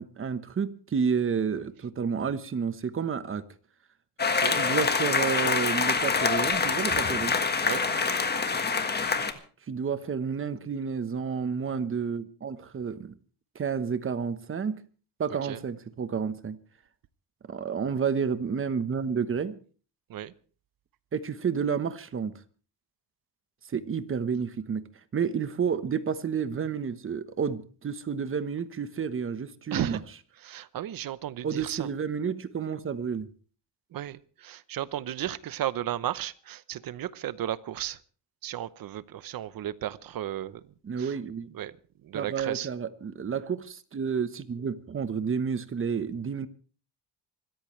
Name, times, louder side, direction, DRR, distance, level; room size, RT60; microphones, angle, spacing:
voice 1, 0.0-3.5 4.5-7.4 9.7-13.1 13.5-14.8 15.2-16.6 17.5-19.5 21.1-22.4 23.7-24.8 25.1-30.0 31.4-33.3 40.8-41.5 42.1-46.5, right 6 dB, 30° right, 12 dB, 1.1 m, -30 dB
sound 1, 4.2-9.3, left 4 dB, 25° left, 1.5 m, -26 dB
voice 2, 7.6-8.1 15.4-15.6 20.1-20.3 29.7-30.0 30.4-31.9 33.9-38.0 38.4-40.6 41.0-41.1 41.5-41.7 42.0-42.7, right 12 dB, 55° right, 16 dB, 0.9 m, -34 dB
26.0 x 14.0 x 3.2 m, 0.40 s
cardioid pair, 155°, 42 cm